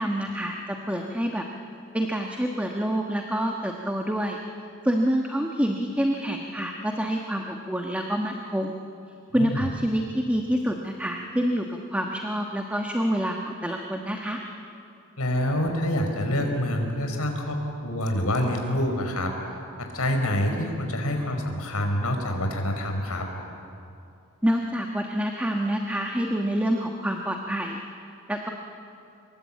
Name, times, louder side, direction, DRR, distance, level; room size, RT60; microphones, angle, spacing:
voice 1, 0.0-1.4 1.9-4.4 4.8-8.7 9.3-14.4 24.4-27.8 28.3-28.5, equal, 5° right, 2 dB, 1.3 m, -27 dB
voice 2, 9.3-9.6 15.2-19.3 19.8-23.3, left 1 dB, 85° left, 3 dB, 4.4 m, -26 dB
25.5 x 22.5 x 8.5 m, 2.6 s
head